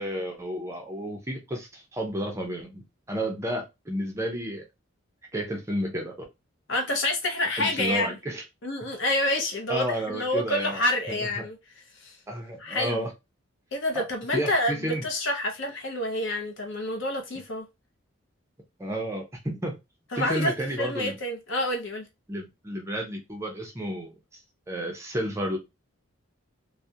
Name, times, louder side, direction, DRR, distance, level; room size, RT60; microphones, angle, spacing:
voice 1, 0.0-2.8 3.1-4.6 5.3-6.1 7.6-8.4 9.7-10.8 11.1-11.4 12.3-13.1 13.9-14.0 14.3-15.0 18.8-19.8 20.2-21.1 22.3-24.1 24.7-25.6, equal, 15° right, 0.4 m, -31 dB
voice 2, 6.7-8.2 8.6-11.6 12.0-12.2 12.6-13.0 13.7-17.6 20.1-20.5 20.8-22.0, left 1 dB, 60° left, 0.6 m, -28 dB
2.3 x 2.0 x 2.7 m
head